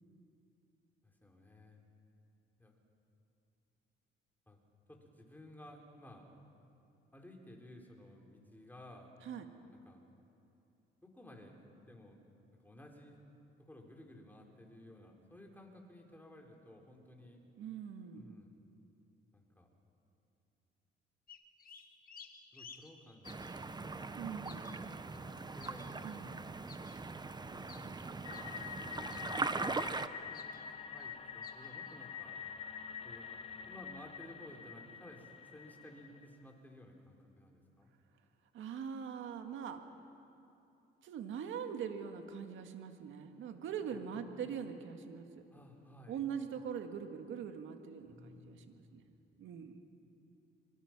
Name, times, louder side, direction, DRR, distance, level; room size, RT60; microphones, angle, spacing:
voice 1, 1.0-1.8 2.6-2.7 4.5-4.6 4.9-6.3 7.1-9.1 9.8-10.0 11.0-12.2 12.6-13.2 13.6-17.4 18.1-18.5 19.3-19.7 22.5-24.0 25.1-26.2 27.4-28.4 28.8-30.6 30.9-32.4 33.0-33.4 33.6-37.9 43.9-44.3 45.5-46.3 48.1-49.1, left 1 dB, 10° left, 0 dB, 4.2 m, -56 dB
voice 2, 17.6-18.3 24.2-24.6 26.0-26.3 38.5-39.8 41.0-45.3 46.1-49.0 49.4-49.8, right 7 dB, 80° right, 6 dB, 2.0 m, -42 dB
sound 1, 21.3-23.5 24.1-26.2 26.7-27.0 27.7-27.9 28.3-28.7 29.1-29.7 30.3-30.6 31.0-31.1 31.4-31.9, left 6 dB, 45° left, 1.9 m, -55 dB
sound 2, 23.2-30.1, right 3 dB, 20° right, 0.9 m, -41 dB
sound 3, 28.2-36.3, left 7 dB, 30° left, 1.5 m, -46 dB
25.0 x 24.0 x 6.1 m, 2.8 s
cardioid pair, 90°, 20 cm